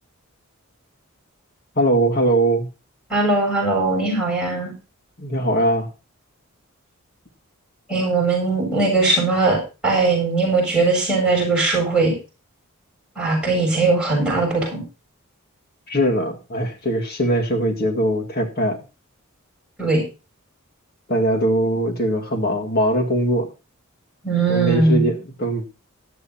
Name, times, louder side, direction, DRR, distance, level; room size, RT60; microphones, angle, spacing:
voice 1, 1.8-2.7 5.2-5.9 15.9-18.8 21.1-23.5 24.5-25.6, right 1 dB, 45° left, 3 dB, 2.0 m, -21 dB
voice 2, 3.1-4.7 7.9-12.1 13.2-14.8 19.8-20.0 24.2-25.1, right 3 dB, 5° right, -2 dB, 7.7 m, -19 dB
17.5 x 12.5 x 2.9 m, 0.31 s
head